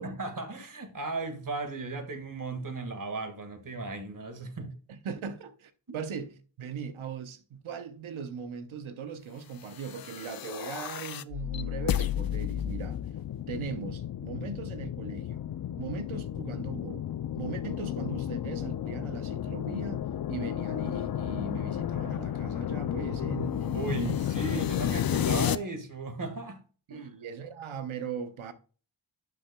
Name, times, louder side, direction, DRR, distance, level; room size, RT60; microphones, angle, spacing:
voice 1, 0.0-4.7 5.9-6.0 23.7-26.6 26.9-27.1, right 3 dB, 40° right, 1.8 m, -36 dB
voice 2, 4.9-13.1 13.5-15.4 15.8-17.1 17.4-20.0 20.3-24.2 26.9-28.5, right 6 dB, 90° right, 0.9 m, -39 dB
sound 1, 9.8-25.6, left 10 dB, 50° left, 0.5 m, -32 dB
11.5 x 7.0 x 2.3 m
cardioid pair, 60°, 47 cm